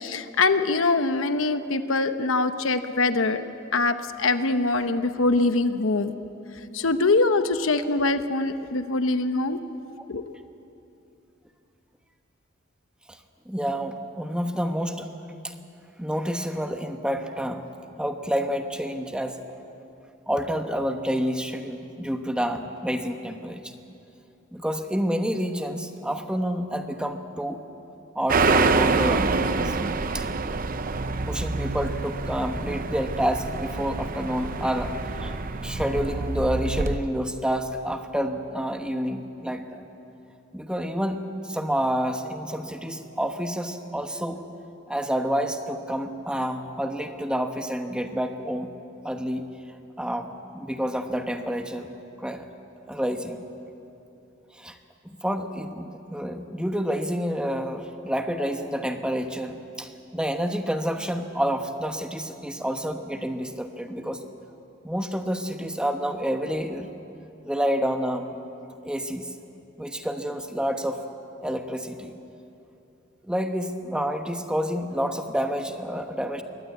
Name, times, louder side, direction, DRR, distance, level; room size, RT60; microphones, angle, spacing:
voice 1, 0.0-3.4 3.7-6.1 6.7-9.6 10.1-10.2, left 3 dB, 85° left, 9 dB, 1.0 m, -23 dB
voice 2, 13.5-15.1 15.4-15.5 16.0-17.6 18.0-19.4 20.3-23.8 24.5-27.6 28.1-29.8 30.1-30.3 31.3-35.3 35.6-39.8 40.5-44.4 44.9-48.7 49.0-49.5 50.0-51.9 52.2-52.5 52.9-53.5 54.5-54.8 55.2-64.2 64.8-66.9 67.4-68.3 68.8-69.3 69.8-71.0 71.4-72.1 73.2-76.4, equal, 5° right, 6 dB, 1.1 m, -29 dB
sound 1, 28.3-37.0, right 3 dB, 45° right, 0.7 m, -26 dB
22.5 x 18.5 x 8.4 m, 2.8 s
head